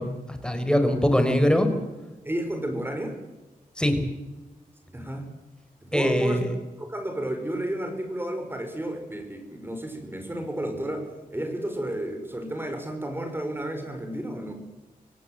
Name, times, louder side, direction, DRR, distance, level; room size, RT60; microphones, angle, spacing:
voice 1, 0.0-1.7 3.8-4.0 5.9-6.5, equal, 5° left, 7 dB, 4.9 m, -22 dB
voice 2, 2.3-3.2 4.9-5.3 5.8-6.4 6.8-14.5, right 1 dB, 15° right, 5 dB, 5.4 m, -32 dB
25.5 x 18.0 x 8.0 m, 1.1 s
wide cardioid pair, 95°, 15 cm